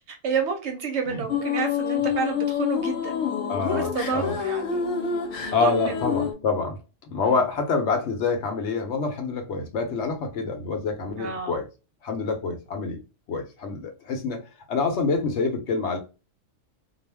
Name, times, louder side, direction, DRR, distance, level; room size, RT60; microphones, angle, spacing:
voice 1, 0.1-3.3 3.7-4.9 5.5-6.0 7.2-7.4 11.2-11.6, right 5 dB, 65° right, 0.8 m, -29 dB
sound 1, 1.3-6.3, left 8 dB, 90° left, 1.1 m, -27 dB
voice 2, 3.5-4.4 5.5-6.8 7.1-11.7 12.0-13.0 13.3-14.4 14.7-16.0, left 4 dB, 65° left, 0.9 m, -26 dB
2.4 x 2.0 x 3.2 m
omnidirectional pair, 1.4 m